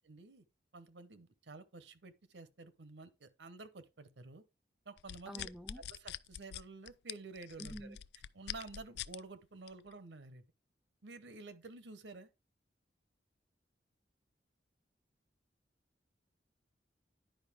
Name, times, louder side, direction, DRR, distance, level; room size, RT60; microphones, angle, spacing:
voice 1, 0.1-0.4 0.7-4.4 4.9-5.5 5.9-8.0 8.3-10.4 11.0-12.3, right 3 dB, 80° right, 0.9 m, -51 dB
sound 1, 5.0-9.2 9.7-9.9, left 11 dB, 65° left, 0.3 m, -44 dB
voice 2, 5.3-5.8 7.6-8.0, right 1 dB, ahead, 0.4 m, -47 dB
10.5 x 5.1 x 3.5 m
head